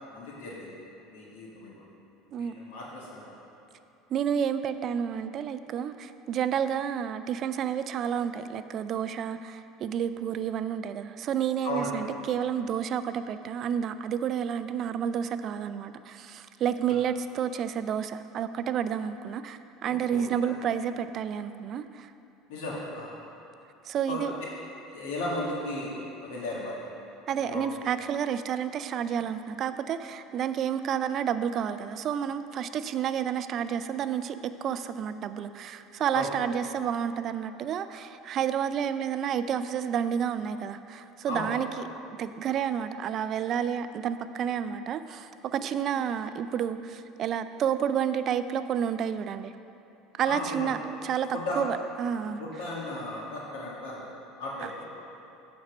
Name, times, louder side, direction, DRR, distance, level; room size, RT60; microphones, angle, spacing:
voice 1, 0.1-0.7 1.1-1.8 2.4-3.3 11.6-11.9 16.9-17.0 19.8-20.5 22.5-23.1 24.1-24.3 24.9-26.8 27.4-27.6 36.1-36.3 41.3-41.5 50.2-50.7 51.3-51.7 52.4-54.0 54.4-54.8, left 2 dB, 85° left, -4 dB, 1.8 m, -35 dB
voice 2, 4.1-22.1 23.9-24.3 27.3-41.8 42.2-49.5 50.2-50.8 51.0-51.3 51.6-52.4 54.6-54.7, right 8 dB, 45° right, 11 dB, 0.3 m, -30 dB
8.2 x 4.3 x 6.0 m, 2.7 s
supercardioid pair, 120°, 0 cm